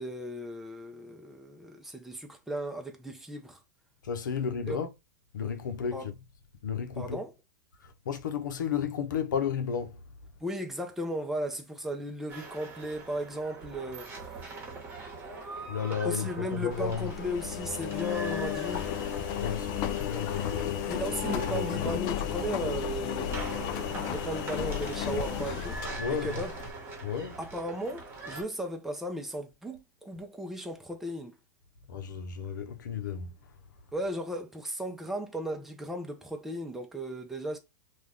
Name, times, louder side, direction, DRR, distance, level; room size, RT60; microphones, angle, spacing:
voice 1, 0.0-3.6 4.7-4.8 5.9-6.1 7.0-7.3 10.4-14.3 16.0-19.0 20.9-25.8 26.1-26.5 27.4-31.3 33.9-37.6, right 1 dB, 5° right, 0.5 m, -36 dB
voice 2, 4.0-4.9 5.3-6.1 6.6-7.2 7.8-10.0 15.7-17.1 19.4-21.0 21.3-21.9 26.0-26.4 27.0-27.4 31.9-33.3, left 7 dB, 80° left, 0.7 m, -33 dB
sound 1, 12.3-28.4, right 3 dB, 20° right, 1.1 m, -43 dB
Engine, 16.7-26.7, left 9 dB, 45° left, 0.4 m, -33 dB
2.4 x 2.3 x 3.3 m
hypercardioid pair, 120°, 10 cm